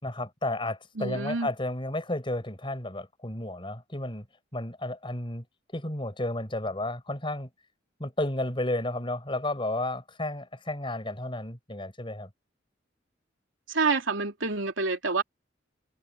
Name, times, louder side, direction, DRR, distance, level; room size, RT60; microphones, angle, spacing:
voice 1, 0.0-4.3 4.5-5.4 5.7-7.5 8.0-12.3, left 1 dB, 25° left, 5.8 m, -32 dB
voice 2, 1.0-1.5 13.7-15.2, right 4 dB, 85° right, 2.8 m, -27 dB
head